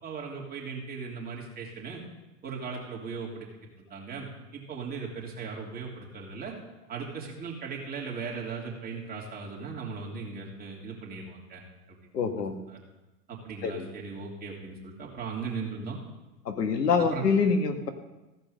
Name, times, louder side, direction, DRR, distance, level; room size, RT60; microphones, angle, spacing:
voice 1, 0.0-2.0 2.4-3.5 3.9-4.3 4.5-6.5 6.9-11.6 11.9-12.0 12.7-12.8 13.3-16.0 17.0-17.2, right 5 dB, 20° right, -3 dB, 2.9 m, -38 dB
voice 2, 12.1-12.6 13.6-13.9 16.4-17.9, left 5 dB, 85° left, 7 dB, 1.5 m, -25 dB
15.5 x 5.2 x 6.4 m, 1.1 s
hypercardioid pair, 120°, 47 cm